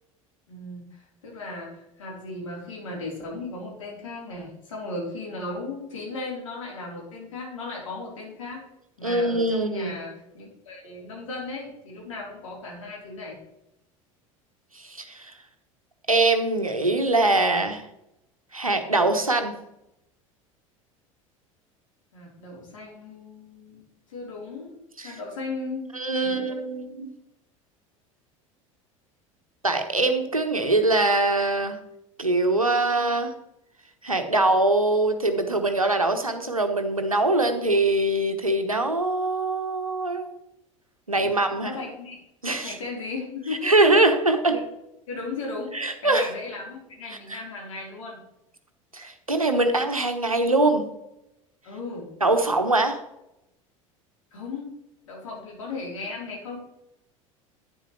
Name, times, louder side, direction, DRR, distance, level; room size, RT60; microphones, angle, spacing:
voice 1, 0.5-8.6 9.0-13.4 22.1-25.9 26.2-27.0 41.2-42.2 42.6-43.9 44.5-44.7 45.1-48.2 51.6-52.1 54.3-54.7 55.0-56.6, left 3 dB, 70° left, -3 dB, 4.0 m, -36 dB
voice 2, 9.0-9.9 14.7-15.3 16.1-17.8 18.5-19.5 25.0-25.2 25.9-27.1 29.6-31.8 32.2-33.3 34.0-40.3 41.1-41.7 42.4-42.7 43.6-44.6 45.7-46.3 47.1-47.4 48.9-50.9 52.2-53.0, right 2 dB, 85° right, 7 dB, 1.1 m, -23 dB
11.0 x 9.6 x 3.3 m, 0.86 s
figure-of-eight pair, 70°, 17 cm